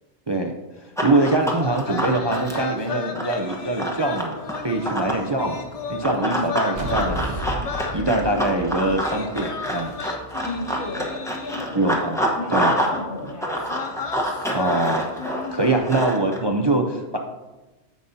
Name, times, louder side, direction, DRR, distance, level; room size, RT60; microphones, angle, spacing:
voice 1, 0.3-5.6 5.9-7.4 7.9-10.0 11.7-12.2 12.5-12.7 14.5-15.1 15.5-17.2, right 2 dB, 35° right, 2 dB, 0.5 m, -23 dB
Run, 1.0-5.3 6.0-13.0 13.2-16.4, equal, 5° left, 1.0 m, -27 dB
sound 1, 1.4-11.9 12.9-13.1 13.6-15.8, left 5 dB, 45° left, 0.5 m, -35 dB
sound 2, 6.8-10.2, right 1 dB, 65° right, 1.3 m, -32 dB
voice 2, 7.9-8.9 10.4-13.7, left 1 dB, 75° left, -7 dB, 3.0 m, -34 dB
15.5 x 5.4 x 2.7 m, 1.1 s
omnidirectional pair, 1.2 m